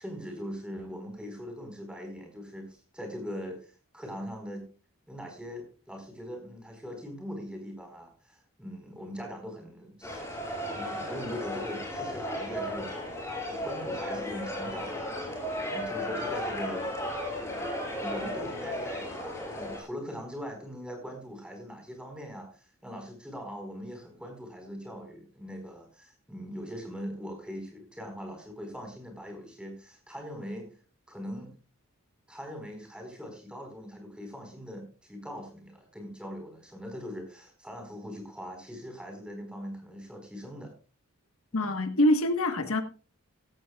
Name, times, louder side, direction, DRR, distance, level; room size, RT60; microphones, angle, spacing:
voice 1, 0.0-4.6 5.1-10.2 10.7-13.0 13.5-15.2 15.7-16.9 17.9-19.1 19.4-30.7 31.1-31.5 32.3-40.7 41.5-41.7, equal, 5° right, 4.6 m, -41 dB
sound 1, 10.0-19.8, left 1 dB, 15° left, 4.9 m, -35 dB
voice 2, 41.5-42.8, left 1 dB, 80° left, 1.4 m, -25 dB
15.5 x 15.0 x 2.4 m
head